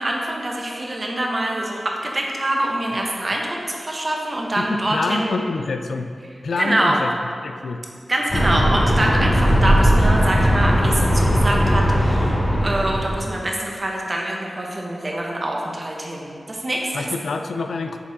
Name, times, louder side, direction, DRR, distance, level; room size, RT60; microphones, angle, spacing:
voice 1, 0.0-5.3 6.6-7.0 8.1-12.4 12.6-17.1, right 1 dB, 40° right, -1 dB, 1.0 m, -24 dB
voice 2, 4.6-6.1 6.4-7.1 7.4-7.8 16.9-18.0, left 3 dB, 90° left, 6 dB, 0.3 m, -26 dB
sound 1, 8.3-13.3, equal, 40° left, 1.1 m, -18 dB
6.8 x 3.6 x 4.0 m, 2.2 s
cardioid pair, 60°, 0 cm